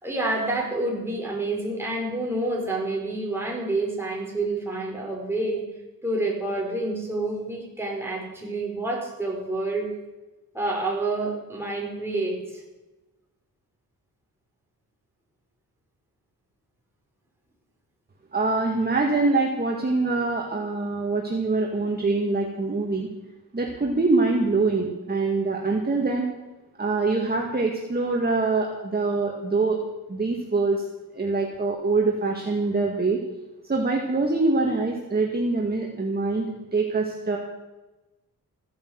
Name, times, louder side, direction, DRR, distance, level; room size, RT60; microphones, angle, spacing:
voice 1, 0.0-5.6 6.0-9.9 10.5-12.6, right 2 dB, 5° right, -2 dB, 5.0 m, -28 dB
voice 2, 18.3-23.1 23.5-26.3 26.8-29.8 30.1-30.8 31.1-33.2 33.7-37.4, right 3 dB, 25° right, 0 dB, 2.0 m, -24 dB
15.5 x 10.5 x 8.1 m, 1.1 s
wide cardioid pair, 115°, 37 cm